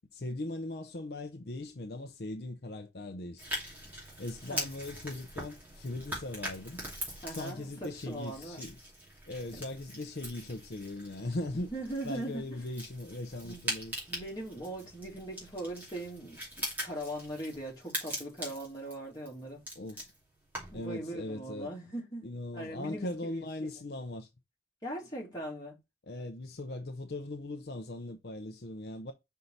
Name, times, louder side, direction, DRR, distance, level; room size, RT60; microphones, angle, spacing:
voice 1, 0.1-3.4 4.2-6.8 7.3-8.8 9.3-11.7 12.0-13.9 19.8-20.0 20.7-21.7 22.2-24.3 26.0-29.1, left 2 dB, 60° left, 0.7 m, -39 dB
sound 1, 3.4-20.9, equal, 10° right, 2.7 m, -42 dB
voice 2, 7.2-8.6 11.5-12.6 13.4-13.6 14.1-19.6 20.7-22.3 22.5-23.5 24.8-25.8, right 1 dB, 20° left, 2.7 m, -40 dB
5.6 x 4.6 x 4.0 m
head